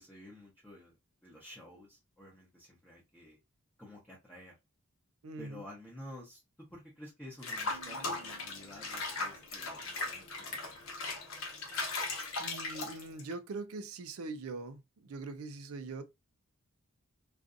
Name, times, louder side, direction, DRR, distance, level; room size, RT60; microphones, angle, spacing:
voice 1, 0.0-3.4 3.8-4.5 5.4-6.4 6.7-11.1, left 1 dB, 5° left, 0.7 m, -51 dB
voice 2, 5.2-5.6 12.4-16.0, right 3 dB, 75° right, 0.5 m, -42 dB
Water / Bathtub (filling or washing), 7.4-13.3, left 3 dB, 65° left, 0.9 m, -38 dB
sound 1, 7.7-10.1, right 6 dB, 30° right, 0.6 m, -58 dB
2.6 x 2.4 x 2.4 m
head